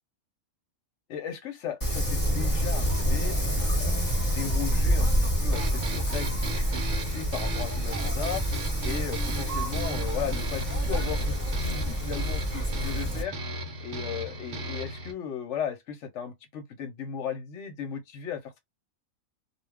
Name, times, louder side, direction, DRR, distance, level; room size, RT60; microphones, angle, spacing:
voice 1, 1.1-3.4 3.8-8.4 8.8-13.4 13.8-18.6, left 7 dB, 65° left, 0.9 m, -36 dB
Wind, 1.8-13.2, equal, 15° left, 0.9 m, -27 dB
sound 1, 5.5-15.1, right 2 dB, 60° right, 0.9 m, -36 dB
2.4 x 2.3 x 3.3 m
omnidirectional pair, 1.5 m